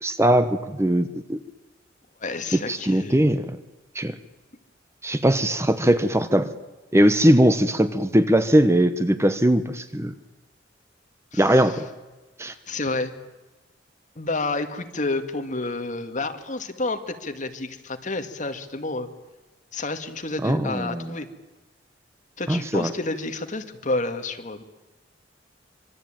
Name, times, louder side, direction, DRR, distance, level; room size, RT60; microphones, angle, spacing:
voice 1, 0.0-1.4 2.7-3.6 3.9-4.1 5.0-6.5 6.9-10.1 11.4-11.8 12.4-12.5 20.4-21.1 22.5-22.9, right 1 dB, 15° right, 11 dB, 1.0 m, -20 dB
voice 2, 2.2-3.2 11.3-11.7 12.7-13.1 14.2-19.1 19.7-21.3 22.4-24.6, left 2 dB, 40° left, 6 dB, 2.1 m, -29 dB
26.0 x 24.0 x 9.1 m, 1.2 s
head